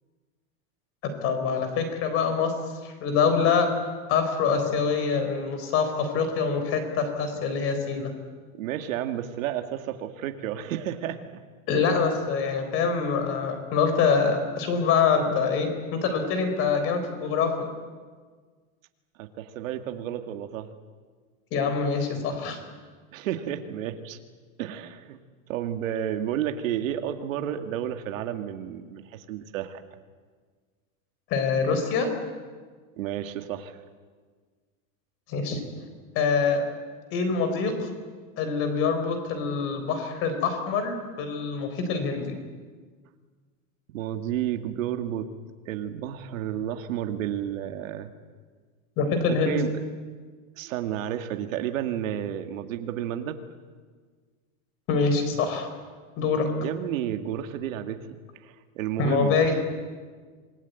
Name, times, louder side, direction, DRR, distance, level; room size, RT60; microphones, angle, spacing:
voice 1, 1.0-3.7 4.1-8.1 11.7-17.7 21.5-22.6 31.3-32.1 35.3-35.6 36.1-36.7 37.1-37.9 38.4-42.4 49.0-49.6 54.9-55.7 56.2-56.5 59.0-59.6, left 5 dB, 30° left, 7 dB, 4.0 m, -25 dB
voice 2, 8.5-11.2 19.2-20.7 23.1-24.2 24.6-25.2 25.5-29.8 33.0-33.8 43.9-45.3 45.7-48.1 49.5-49.7 50.6-53.4 56.6-58.2 58.4-59.6, right 10 dB, 70° right, 7 dB, 2.2 m, -31 dB
27.0 x 21.0 x 9.3 m, 1.5 s
supercardioid pair, 175°, 42 cm